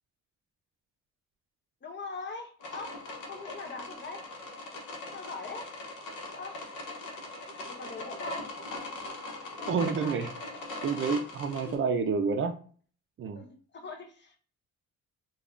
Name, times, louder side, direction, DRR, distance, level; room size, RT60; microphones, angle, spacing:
voice 1, 1.8-3.0 3.3-4.2 5.1-5.7 6.4-6.6 7.7-8.5 9.6-10.2 11.5-11.9 13.3-14.4, left 3 dB, 35° left, 5 dB, 0.6 m, -42 dB
sound 1, 2.6-11.8, left 2 dB, 80° left, 0.9 m, -41 dB
voice 2, 9.7-10.3 10.8-12.5 13.2-13.4, right 5 dB, 45° right, 7 dB, 0.4 m, -29 dB
3.4 x 2.3 x 2.5 m, 0.43 s
cardioid pair, 90°, 30 cm